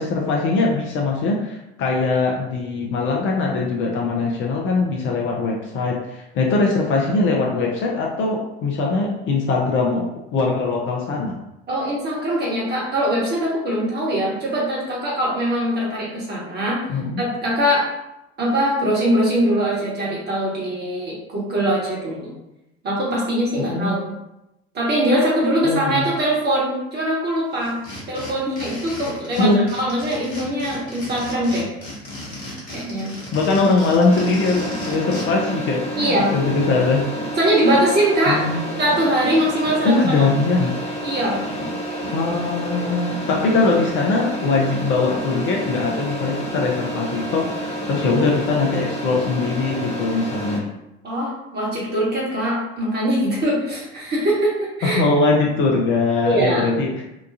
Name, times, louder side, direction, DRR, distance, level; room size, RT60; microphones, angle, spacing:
voice 1, 0.0-10.0 10.3-11.3 16.9-17.2 23.6-23.9 25.6-26.1 29.4-29.6 33.3-37.0 38.3-38.6 39.8-40.7 42.1-50.6 54.8-57.0, left 3 dB, 40° left, -1 dB, 0.5 m, -21 dB
voice 2, 11.7-16.8 17.2-17.9 18.4-22.3 22.8-24.1 24.7-27.8 28.1-31.7 32.7-33.1 35.9-36.3 37.4-38.4 38.8-40.3 41.0-41.4 51.0-55.0 56.2-56.7, right 1 dB, 30° right, -5 dB, 1.2 m, -22 dB
sound 1, 27.6-35.3, left 1 dB, 85° left, 0.9 m, -36 dB
sound 2, 34.1-50.6, equal, 20° left, 1.0 m, -29 dB
2.9 x 2.3 x 2.5 m, 0.91 s
figure-of-eight pair, 65°, 32 cm